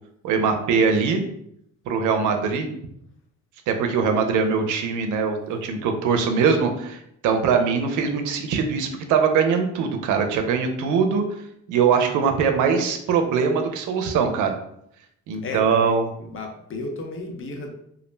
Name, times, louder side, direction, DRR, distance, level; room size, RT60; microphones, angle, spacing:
voice 1, 0.2-1.2 1.9-2.7 3.7-11.2 11.7-14.5 15.3-16.1, right 5 dB, 80° right, 5 dB, 0.5 m, -22 dB
voice 2, 15.4-15.9 16.2-17.7, left 3 dB, 45° left, 3 dB, 0.6 m, -33 dB
2.4 x 2.1 x 3.1 m, 0.74 s
cardioid pair, 90°, 30 cm